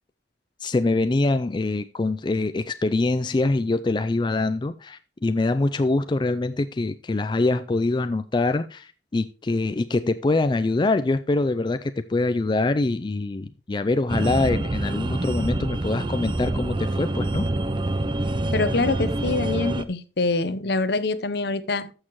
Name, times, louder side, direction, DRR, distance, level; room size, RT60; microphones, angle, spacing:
voice 1, 0.6-17.4, left 2 dB, 25° left, 0.4 m, -24 dB
sound 1, 14.1-19.8, right 2 dB, 25° right, 0.5 m, -26 dB
voice 2, 18.5-21.9, left 3 dB, 65° left, 0.8 m, -25 dB
13.5 x 6.5 x 3.0 m
head